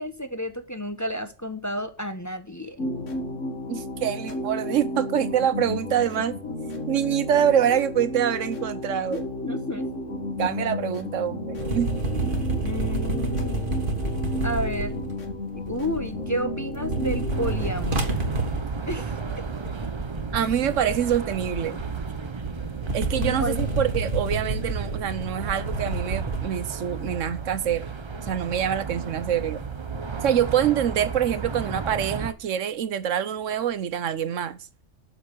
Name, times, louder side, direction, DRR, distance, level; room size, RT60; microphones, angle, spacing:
voice 1, 0.0-2.8 9.1-9.2 9.4-9.8 12.6-13.8 14.4-15.0 15.7-18.1 18.9-19.1 23.2-23.6, equal, 15° left, 1.0 m, -31 dB
sound 1, 2.8-17.7, left 1 dB, 75° left, 2.1 m, -33 dB
voice 2, 3.7-6.4 6.9-9.2 10.4-12.3 20.3-21.8 22.9-27.9 28.2-29.6 30.2-34.6, right 9 dB, 80° right, 1.1 m, -25 dB
sound 2, 11.6-16.3 16.6-26.4, right 2 dB, 45° right, 1.9 m, -29 dB
sound 3, 17.3-32.3, right 5 dB, 30° right, 0.7 m, -34 dB
7.7 x 6.9 x 8.2 m
omnidirectional pair, 1.3 m